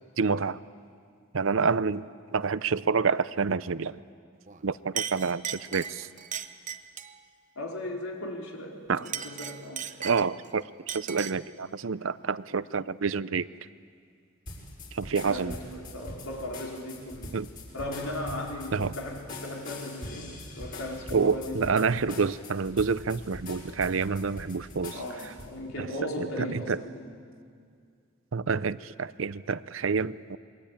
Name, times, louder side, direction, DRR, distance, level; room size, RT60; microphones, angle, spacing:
voice 1, 0.2-0.6 1.3-4.0 4.6-6.1 8.9-9.1 10.0-13.5 14.9-15.5 17.3-17.5 18.7-18.9 21.1-25.0 25.8-25.9 26.2-26.8 28.3-30.4, right 5 dB, 70° right, 16 dB, 0.6 m, -28 dB
Chink clink, 4.5-4.6 5.0-7.2 8.9-10.5 10.9-11.5, right 8 dB, 35° right, 0.9 m, -37 dB
voice 2, 7.6-9.9 15.2-17.3 17.7-21.7 24.9-27.1, left 1 dB, 90° left, 0 dB, 4.4 m, -37 dB
sound 1, 14.5-25.5, left 2 dB, 40° left, 5.8 m, -43 dB
27.5 x 22.5 x 8.8 m, 2.2 s
head